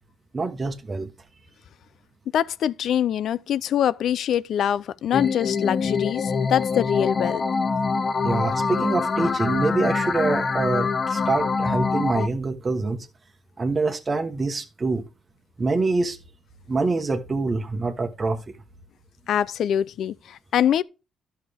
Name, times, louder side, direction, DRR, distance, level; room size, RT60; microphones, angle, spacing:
voice 1, 0.3-1.1 8.2-13.1 13.6-15.0 15.6-16.2 16.7-18.6, right 3 dB, 30° right, 1.2 m, -25 dB
voice 2, 2.3-7.4 19.3-20.8, left 9 dB, 70° left, 0.5 m, -24 dB
sound 1, 5.1-12.3, left 4 dB, 35° left, 0.8 m, -25 dB
12.5 x 5.7 x 3.5 m
cardioid pair, 90°, 0 cm